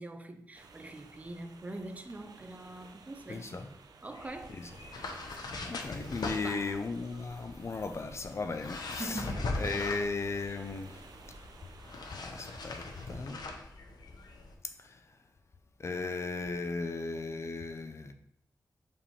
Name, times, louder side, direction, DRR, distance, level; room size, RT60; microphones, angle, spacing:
voice 1, 0.0-3.6 4.0-4.6 6.4-6.8 9.0-9.6, right 2 dB, 20° right, 0.5 m, -43 dB
sound 1, 0.5-13.2, right 4 dB, 70° right, 0.6 m, -55 dB
voice 2, 3.3-3.7 4.6-4.7 5.7-9.2 9.6-11.0 12.2-13.5 14.8-15.0 15.8-18.1, left 3 dB, 45° left, 0.5 m, -36 dB
sound 2, 4.1-14.5, left 2 dB, 80° left, 0.8 m, -41 dB
5.1 x 3.4 x 5.5 m
wide cardioid pair, 150°, 7 cm